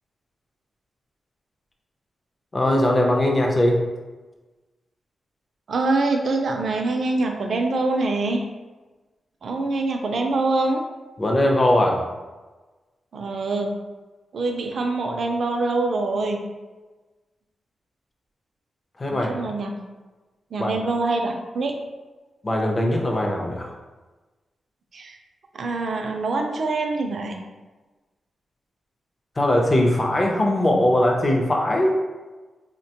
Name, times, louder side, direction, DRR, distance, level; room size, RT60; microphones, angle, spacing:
voice 1, 2.5-3.8 11.2-12.0 19.0-19.3 20.6-20.7 22.4-23.7 29.4-32.0, left 1 dB, 25° left, 0 dB, 0.5 m, -20 dB
voice 2, 5.7-8.4 9.4-10.8 13.1-13.7 14.3-16.4 19.1-19.7 20.5-21.7 24.9-25.2 25.5-27.4, right 3 dB, 55° right, 3 dB, 0.4 m, -24 dB
4.4 x 2.1 x 2.8 m, 1.2 s
wide cardioid pair, 165°, 0 cm